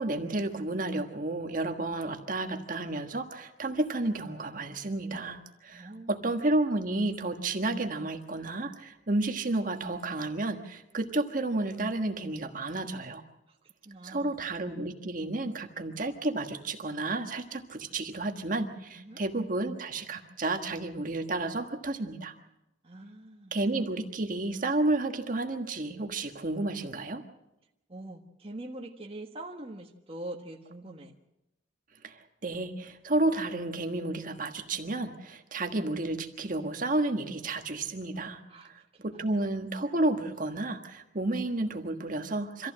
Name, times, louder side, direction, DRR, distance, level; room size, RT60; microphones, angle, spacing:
voice 1, 0.0-13.2 14.0-22.3 23.5-27.2 32.0-42.7, right 2 dB, 45° right, 5 dB, 1.5 m, -31 dB
voice 2, 5.7-6.2 13.6-14.4 18.9-19.2 22.8-23.6 27.9-31.1 38.5-39.4, right 1 dB, 30° right, 1 dB, 1.4 m, -44 dB
25.0 x 15.0 x 7.5 m, 0.90 s
head